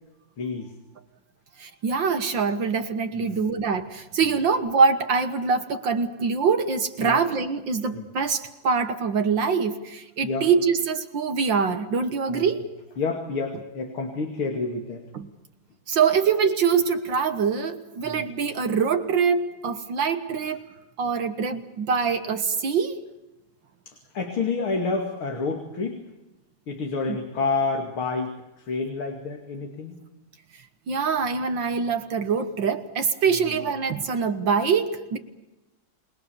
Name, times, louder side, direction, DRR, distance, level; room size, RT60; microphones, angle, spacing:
voice 1, 0.4-0.7 3.1-3.5 4.2-4.4 7.0-7.2 7.9-8.1 10.2-10.5 12.3-12.5 13.0-15.0 18.0-18.3 23.9-26.0 26.7-30.0 33.3-33.6, left 4 dB, 75° left, 3 dB, 3.3 m, -29 dB
voice 2, 1.6-12.6 15.1-15.3 15.9-20.6 21.0-23.0 30.9-35.2, right 5 dB, 60° right, 8 dB, 2.0 m, -24 dB
28.5 x 21.0 x 7.1 m, 0.97 s
omnidirectional pair, 2.3 m